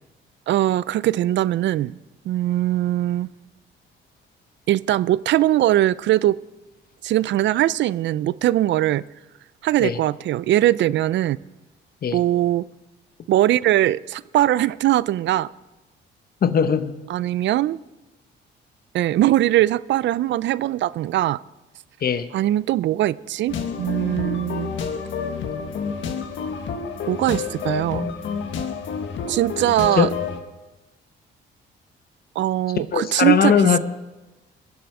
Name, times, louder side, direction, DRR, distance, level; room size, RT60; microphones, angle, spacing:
voice 1, 0.5-2.0 2.3-3.3 4.7-6.4 7.0-9.0 9.6-11.4 12.1-12.6 13.3-15.5 17.1-17.8 18.9-21.4 22.3-24.7 27.1-28.1 29.3-30.1 32.4-33.6, right 14 dB, 65° right, 20 dB, 0.4 m, -21 dB
voice 2, 16.4-16.9 22.0-22.3 29.9-30.2 32.9-33.8, left 7 dB, 50° left, 12 dB, 0.9 m, -19 dB
sound 1, 23.5-30.4, left 6 dB, 70° left, 1.3 m, -29 dB
22.0 x 7.7 x 4.9 m, 1.1 s
cardioid pair, 90°, 20 cm